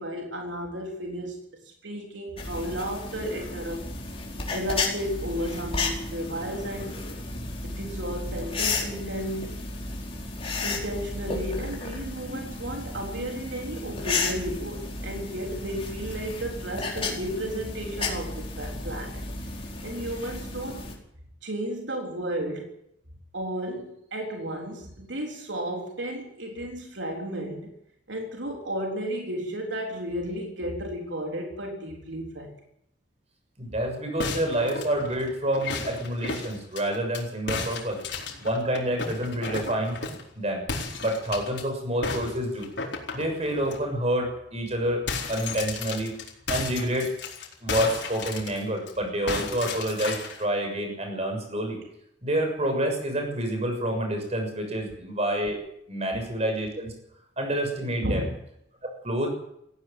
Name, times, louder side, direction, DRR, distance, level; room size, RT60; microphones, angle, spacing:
voice 1, 0.0-1.4 1.6-3.9 4.5-6.9 7.6-9.6 10.6-19.5 19.8-20.8 21.4-22.7 23.3-27.7 28.1-32.6 58.0-58.4, equal, 80° right, 1 dB, 3.8 m, -33 dB
sound 1, 2.4-20.9, left 3 dB, 30° left, 4.8 m, -33 dB
voice 2, 33.6-38.0 38.4-40.0 40.3-40.6 41.0-42.7 43.1-45.0 45.3-46.1 46.5-47.1 47.6-51.8 52.2-55.6 55.9-56.9 57.4-58.3 59.0-59.3, right 1 dB, 35° right, 4 dB, 6.7 m, -28 dB
sound 2, 34.2-37.2 37.5-40.3 40.7-41.6 42.0-43.8 44.2-44.3 44.6-48.9 49.3-50.4, left 4 dB, 65° left, 4.5 m, -34 dB
18.0 x 16.0 x 9.1 m, 0.76 s
head